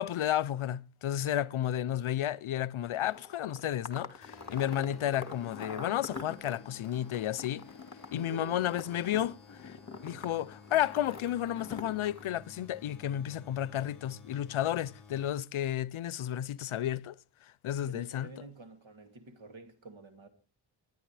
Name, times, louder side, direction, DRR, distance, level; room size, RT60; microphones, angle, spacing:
voice 1, 0.0-7.7 8.1-9.8 10.0-17.2 17.6-18.3, left 11 dB, 85° left, 0.6 m, -32 dB
sound 1, 2.9-12.3, left 4 dB, 35° left, 1.7 m, -45 dB
sound 2, 4.2-15.6, left 4 dB, ahead, 5.9 m, -54 dB
voice 2, 8.2-8.6 17.8-20.3, right 3 dB, 70° right, 2.6 m, -48 dB
22.0 x 10.5 x 3.3 m
wide cardioid pair, 95°, 48 cm